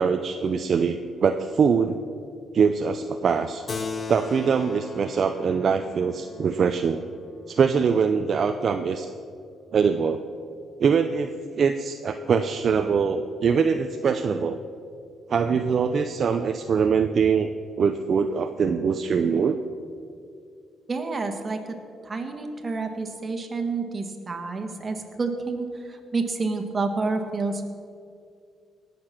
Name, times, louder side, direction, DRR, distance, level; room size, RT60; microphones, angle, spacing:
voice 1, 0.0-2.0 2.5-3.7 4.1-7.0 7.5-9.1 9.7-10.2 10.8-14.6 15.3-17.5 17.8-19.6, right 6 dB, 50° right, 7 dB, 0.5 m, -23 dB
Keyboard (musical), 3.7-8.6, left 4 dB, 40° left, 0.8 m, -38 dB
voice 2, 20.9-21.8 22.0-27.6, right 3 dB, 30° right, 4 dB, 1.7 m, -29 dB
18.5 x 6.8 x 6.0 m, 2.4 s
cardioid pair, 90°, 0 cm